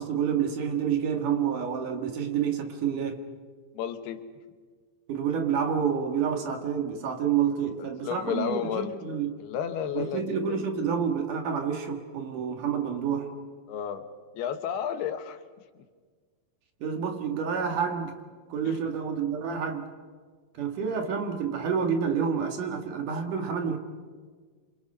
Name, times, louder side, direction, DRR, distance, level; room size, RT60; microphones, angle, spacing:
voice 1, 0.0-3.2 5.1-9.4 9.9-13.3 16.8-18.1 18.5-19.9 20.5-23.8, right 7 dB, 60° right, 5 dB, 3.1 m, -28 dB
voice 2, 3.7-4.3 7.8-8.9 9.4-10.6 13.7-14.1 14.3-15.4 18.6-18.8, left 9 dB, 85° left, 8 dB, 3.3 m, -32 dB
27.0 x 27.0 x 5.5 m, 1.5 s
omnidirectional pair, 4.5 m